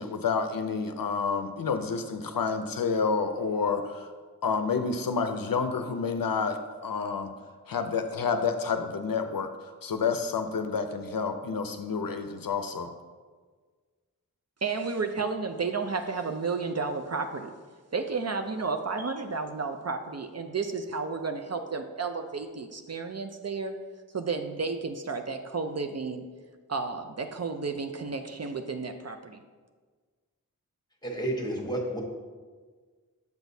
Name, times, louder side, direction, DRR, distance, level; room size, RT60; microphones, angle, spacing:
voice 1, 0.0-4.1 4.4-7.3 7.7-12.9, left 5 dB, 70° left, 7 dB, 0.5 m, -29 dB
voice 2, 14.6-17.5 17.9-23.8 24.1-26.3 26.7-29.4, right 4 dB, 45° right, 5 dB, 0.5 m, -32 dB
voice 3, 31.0-32.0, right 1 dB, 10° left, 0 dB, 1.2 m, -31 dB
6.8 x 6.1 x 2.7 m, 1.5 s
wide cardioid pair, 45°, 36 cm